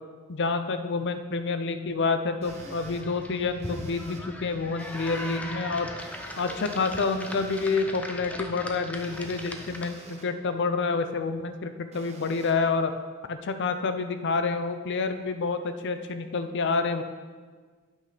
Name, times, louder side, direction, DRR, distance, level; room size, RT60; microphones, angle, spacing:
voice 1, 0.3-5.9 6.4-12.9 13.3-17.0, left 4 dB, 55° left, 8 dB, 0.6 m, -28 dB
sound 1, 2.4-3.0 3.6-4.2 4.8-5.4 6.0-7.8 8.9-10.3 11.9-12.5, right 3 dB, 30° right, 1.0 m, -49 dB
sound 2, 2.5-10.2, left 1 dB, 5° left, 0.6 m, -39 dB
8.3 x 6.2 x 5.0 m, 1.5 s
head